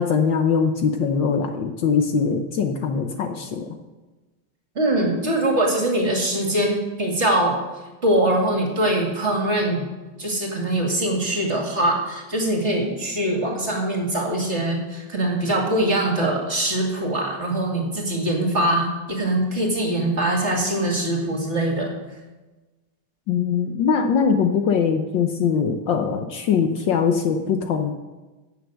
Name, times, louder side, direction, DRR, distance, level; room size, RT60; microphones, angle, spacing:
voice 1, 0.0-3.7 23.3-27.9, left 6 dB, 65° left, 5 dB, 1.5 m, -22 dB
voice 2, 4.7-7.6 8.0-9.8 10.2-21.9, right 1 dB, 30° right, -1 dB, 2.5 m, -22 dB
16.0 x 7.0 x 6.3 m, 1.2 s
omnidirectional pair, 2.4 m